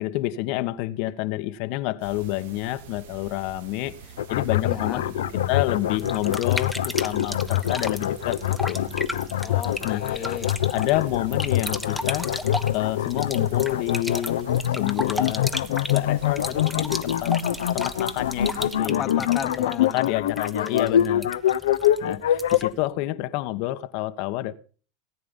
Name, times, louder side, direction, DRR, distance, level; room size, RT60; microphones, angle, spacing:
voice 1, 0.0-4.0 4.3-5.1 5.5-8.8 9.8-10.4 10.6-12.3 12.7-17.4 17.7-19.1 19.8-21.3 22.0-24.5, left 16 dB, 60° left, 1.2 m, -28 dB
sound 1, 2.0-18.8, right 5 dB, 75° right, 2.4 m, -45 dB
sound 2, 4.2-22.7, left 11 dB, 85° left, 0.9 m, -24 dB
voice 2, 4.6-5.0 9.4-10.6 18.8-20.3 20.6-21.0, left 10 dB, 40° left, 1.3 m, -34 dB
sound 3, 6.0-22.8, left 1 dB, ahead, 1.3 m, -35 dB
18.5 x 9.6 x 5.3 m
hypercardioid pair, 105°, 0 cm